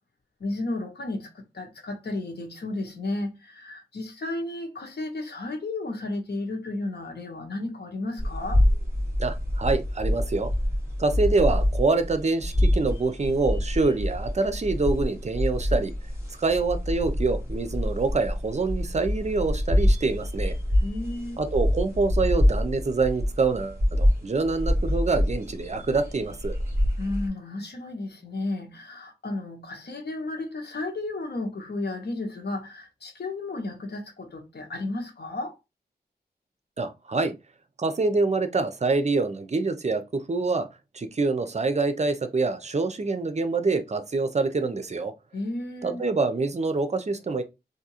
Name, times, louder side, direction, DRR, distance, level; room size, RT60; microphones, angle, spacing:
voice 1, 0.4-8.6 20.8-21.4 27.0-35.5 45.3-46.0, left 2 dB, 75° left, 1.1 m, -33 dB
sound 1, 8.2-27.3, left 1 dB, 15° right, 2.2 m, -26 dB
voice 2, 9.2-10.5 11.0-15.9 16.4-20.5 21.4-26.6 36.8-37.3 37.8-40.7 40.9-45.1 45.8-47.4, right 3 dB, 40° right, 0.6 m, -26 dB
3.6 x 2.7 x 2.9 m
wide cardioid pair, 100°, 17 cm